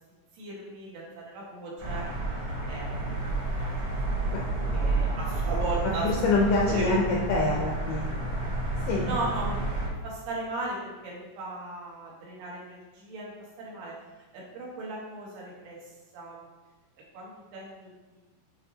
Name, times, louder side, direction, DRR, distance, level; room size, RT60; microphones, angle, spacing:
voice 1, 0.3-2.1 2.5-3.7 4.1-4.2 4.7-6.1 6.7-7.0 9.0-9.6 10.0-13.3 13.6-13.9 14.3-15.8 16.1-16.4 17.1-17.9, right 2 dB, 80° right, -5 dB, 3.7 m, -36 dB
sound 1, 1.8-9.9, right 2 dB, 45° right, 1.2 m, -30 dB
voice 2, 6.0-8.2 8.9-9.1, left 3 dB, 75° left, -2 dB, 2.0 m, -26 dB
9.2 x 4.2 x 2.8 m, 1.2 s
omnidirectional pair, 4.5 m